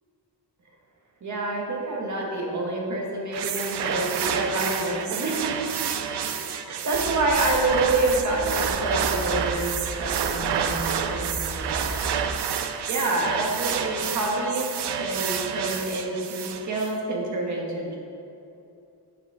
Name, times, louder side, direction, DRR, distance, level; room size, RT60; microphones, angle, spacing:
voice 1, 1.2-5.8 6.5-11.9 12.9-18.0, right 2 dB, 45° right, -2 dB, 1.6 m, -27 dB
sound 1, 3.3-16.9, right 8 dB, 80° right, 0.7 m, -29 dB
sound 2, 6.9-12.4, right 1 dB, 10° right, 0.8 m, -36 dB
9.8 x 6.0 x 4.9 m, 2.7 s
wide cardioid pair, 180°, 40 cm